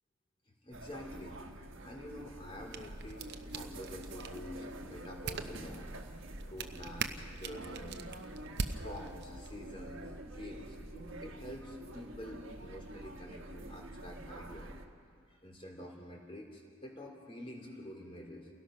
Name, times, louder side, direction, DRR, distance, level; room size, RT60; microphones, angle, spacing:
voice 1, 0.6-8.0 8.7-14.7 15.3-18.5, left 1 dB, 25° left, 0 dB, 3.3 m, -48 dB
sound 1, 0.7-14.9, right 1 dB, 70° right, 1.4 m, -47 dB
sound 2, 2.4-9.5, right 4 dB, 55° right, 0.8 m, -43 dB
29.0 x 17.5 x 5.7 m, 2.2 s
head